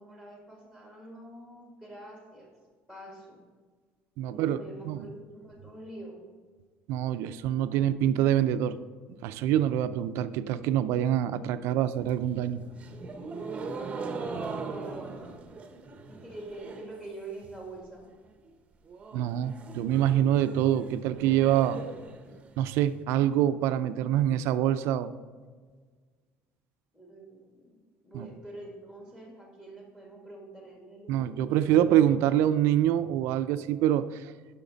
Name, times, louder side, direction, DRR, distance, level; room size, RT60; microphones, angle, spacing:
voice 1, 0.0-2.5 2.9-3.4 4.2-6.2 14.7-15.8 16.1-18.1 26.9-32.1, right 2 dB, 10° left, -1 dB, 1.9 m, -46 dB
voice 2, 4.2-4.6 4.9-5.1 6.9-8.8 9.1-12.6 19.1-21.8 22.6-25.1 28.1-28.3 31.1-34.3, right 11 dB, 75° right, 12 dB, 0.5 m, -25 dB
sound 1, 12.0-17.0 17.3-17.8 18.1-18.2 18.5-18.6 18.9-22.9, right 4 dB, 25° right, 0.8 m, -40 dB
11.5 x 5.8 x 4.0 m, 1.5 s
cardioid pair, 135°, 4 cm